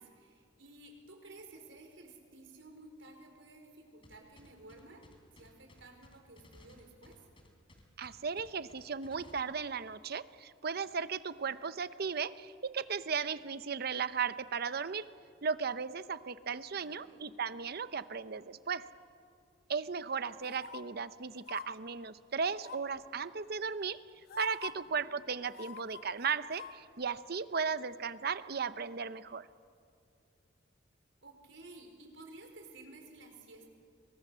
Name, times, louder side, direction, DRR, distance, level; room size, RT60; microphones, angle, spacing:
voice 1, 0.0-5.0 5.3-7.2 16.8-17.3 24.9-25.1 31.2-33.7, right 2 dB, 75° right, 4 dB, 4.4 m, -54 dB
sound 1, 4.0-9.4, left 1 dB, 30° left, 3.5 m, -58 dB
voice 2, 8.0-15.1 15.4-18.9 19.7-24.0 24.4-29.5, right 5 dB, 55° right, 14 dB, 0.8 m, -36 dB
sound 2, 20.4-20.8 21.4-21.7 22.6-23.0 23.8-23.9 24.3-24.7 25.5-26.7 27.1-27.2, left 7 dB, 55° left, 1.2 m, -46 dB
27.5 x 23.0 x 6.9 m, 2.3 s
head